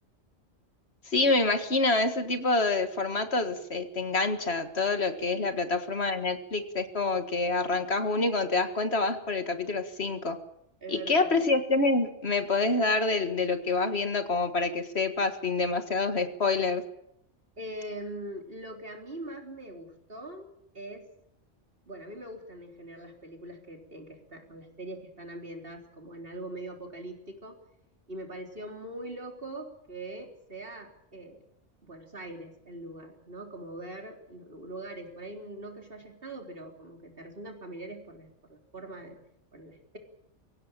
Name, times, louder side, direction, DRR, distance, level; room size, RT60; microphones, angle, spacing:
voice 1, 1.1-10.4 10.9-16.8, left 3 dB, 60° left, 8 dB, 2.1 m, -27 dB
voice 2, 10.8-11.3 17.6-20.5 20.7-21.1 21.9-27.6 28.1-31.4 31.8-39.2 39.5-40.0, right 1 dB, 50° right, 2 dB, 4.1 m, -42 dB
24.0 x 17.0 x 8.9 m, 0.78 s
omnidirectional pair, 1.2 m